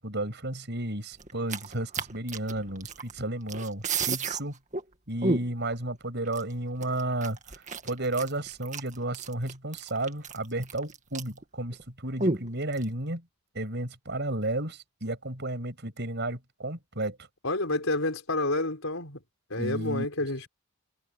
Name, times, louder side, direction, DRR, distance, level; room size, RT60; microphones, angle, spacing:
voice 1, 0.0-4.6 5.1-13.2 13.5-17.2 19.6-20.1, right 1 dB, 55° right, 7.6 m, -33 dB
sound 1, 1.2-3.2 3.5-4.4 4.7-4.8 5.2-5.7 6.3-6.4 6.8-11.4 11.7-11.8 12.2-12.8, right 3 dB, 35° right, 2.0 m, -31 dB
voice 2, 17.4-19.2 19.5-20.5, left 2 dB, 70° left, 5.0 m, -29 dB
head